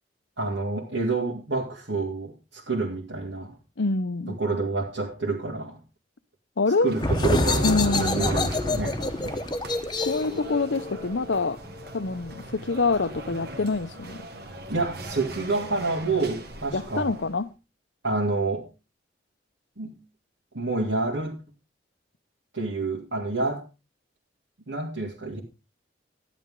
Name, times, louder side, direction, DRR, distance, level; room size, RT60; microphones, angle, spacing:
voice 1, 0.4-3.6 4.3-5.8 6.8-9.4 14.7-17.2 18.0-18.7 19.8-20.0 20.5-21.3 22.5-23.6 24.7-25.4, right 3 dB, 80° right, 2.6 m, -28 dB
voice 2, 3.8-4.4 6.6-7.0 7.6-8.3 10.1-11.6 11.9-14.3 16.7-17.5, left 3 dB, 75° left, 0.8 m, -26 dB
sound 1, 6.8-17.5, right 2 dB, 60° right, 1.8 m, -40 dB
sound 2, 7.0-12.4, left 2 dB, 25° left, 0.9 m, -27 dB
13.5 x 11.0 x 3.7 m
head